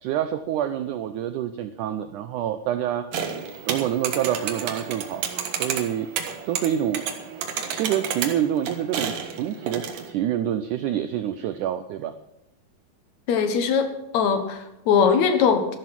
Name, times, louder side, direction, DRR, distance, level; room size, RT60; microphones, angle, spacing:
voice 1, 0.0-3.1 3.7-6.1 6.5-7.0 7.7-12.1, right 10 dB, 85° right, 11 dB, 1.8 m, -27 dB
sound 1, 3.1-10.1, right 7 dB, 65° right, 2.8 m, -31 dB
voice 2, 13.3-13.9 14.1-15.8, left 6 dB, 55° left, 7 dB, 2.4 m, -20 dB
13.0 x 12.5 x 6.0 m, 0.86 s
omnidirectional pair, 4.4 m